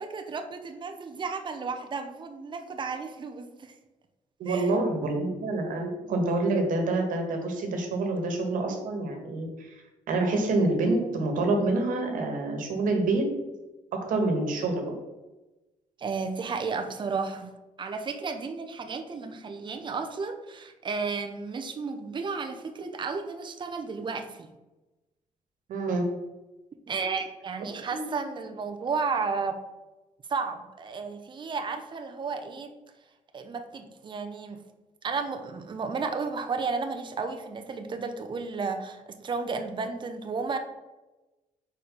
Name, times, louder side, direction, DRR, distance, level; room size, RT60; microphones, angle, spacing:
voice 1, 0.0-3.7 4.5-4.6 16.0-17.5 17.8-24.5 26.9-29.6 30.3-32.7 33.3-34.6 35.0-40.6, right 4 dB, 35° right, 6 dB, 0.8 m, -33 dB
voice 2, 4.4-13.2 13.9-14.9 25.7-26.0 27.9-28.0, right 2 dB, 75° right, 3 dB, 1.5 m, -27 dB
5.1 x 4.6 x 5.4 m, 1.1 s
cardioid pair, 100°, 14 cm